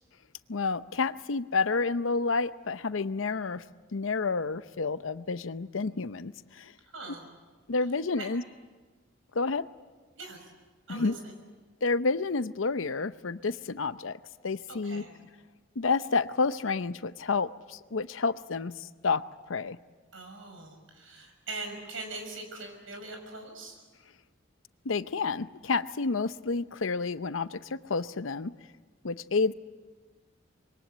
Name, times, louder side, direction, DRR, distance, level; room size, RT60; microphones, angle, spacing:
voice 1, 0.5-3.6 3.9-6.7 7.1-7.2 7.7-8.4 9.3-9.7 10.9-11.1 11.8-15.0 15.8-19.8 24.8-28.5 29.0-29.5, left 4 dB, 80° left, 14 dB, 0.7 m, -30 dB
voice 2, 6.9-7.3 8.2-8.3 10.2-10.5 10.9-11.3 14.7-15.1 20.1-23.8, right 3 dB, 80° right, 4 dB, 6.0 m, -42 dB
25.5 x 22.0 x 8.0 m, 1.4 s
head